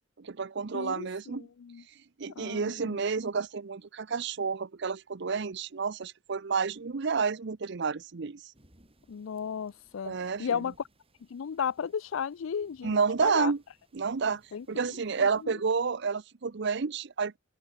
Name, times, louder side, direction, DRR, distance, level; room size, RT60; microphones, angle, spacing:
voice 1, 0.2-1.5 2.2-8.4 10.0-10.6 12.8-13.6 13.9-14.4 14.7-17.4, right 5 dB, 60° right, 0.7 m, -30 dB
voice 2, 0.7-1.8 2.3-3.0 9.1-10.7 11.3-12.9 13.2-13.5 14.5-15.5, left 7 dB, 90° left, 0.4 m, -35 dB
sound 1, 8.5-15.5, right 1 dB, 30° right, 6.1 m, -66 dB
open air
head